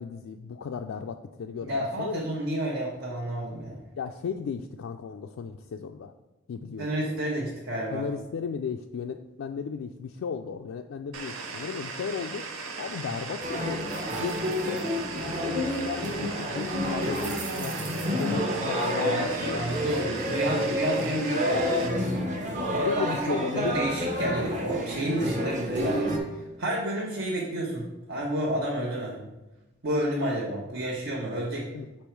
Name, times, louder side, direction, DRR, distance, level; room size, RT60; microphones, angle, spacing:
voice 1, 0.0-2.2 4.0-6.1 6.5-7.0 7.9-12.5 12.8-13.8 14.2-14.9 15.2-20.4 22.6-23.9 31.7-31.9, left 6 dB, 80° left, 5 dB, 0.3 m, -35 dB
voice 2, 1.6-3.7 6.8-8.0 19.0-19.2 19.5-21.4 21.8-26.1 26.6-29.2 29.8-31.7, right 1 dB, 70° right, -4 dB, 1.1 m, -30 dB
sound 1, 11.1-21.9, right 4 dB, 85° right, 0.8 m, -38 dB
sound 2, 13.4-26.2, equal, 40° right, 0.9 m, -29 dB
5.3 x 4.5 x 4.5 m, 1.0 s
head